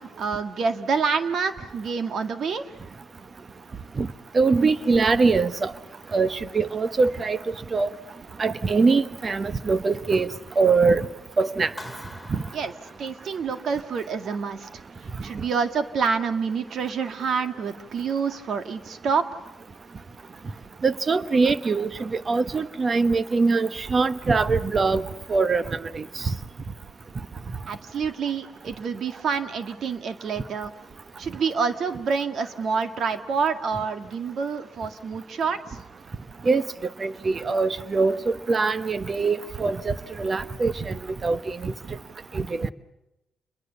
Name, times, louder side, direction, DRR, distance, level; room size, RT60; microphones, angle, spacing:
voice 1, 0.0-2.6 12.5-12.7 13.0-14.7 15.2-19.3 27.7-30.7 31.2-35.8, right 5 dB, 60° right, 2.0 m, -27 dB
voice 2, 4.3-5.7 6.1-7.4 7.7-7.9 8.4-10.3 10.6-11.1 11.4-11.7 12.3-12.4 20.8-26.3 36.4-36.6 37.0-41.7 42.3-42.7, right 4 dB, 35° right, 1.1 m, -23 dB
Clapping, 11.8-13.6, left 1 dB, ahead, 2.3 m, -44 dB
28.5 x 22.0 x 7.1 m
cardioid pair, 90°, 0 cm